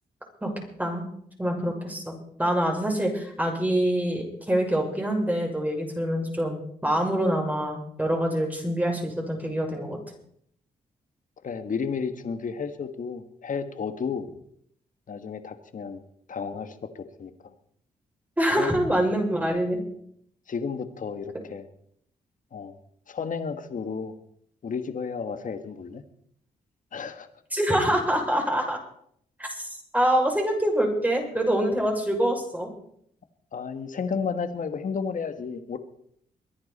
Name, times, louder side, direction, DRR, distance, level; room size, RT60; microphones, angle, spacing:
voice 1, 1.4-10.0 18.4-19.8 27.5-28.8 29.4-29.7 29.9-32.7, right 1 dB, 10° right, 0 dB, 6.7 m, -25 dB
voice 2, 11.4-14.2 15.1-16.0 16.3-17.3 18.6-18.7 20.5-21.7 22.5-22.7 23.1-24.1 24.6-26.0 26.9-27.3 33.5-35.8, left 5 dB, 55° left, 9 dB, 1.6 m, -32 dB
23.5 x 10.5 x 4.3 m, 0.68 s
cardioid pair, 60°, 16 cm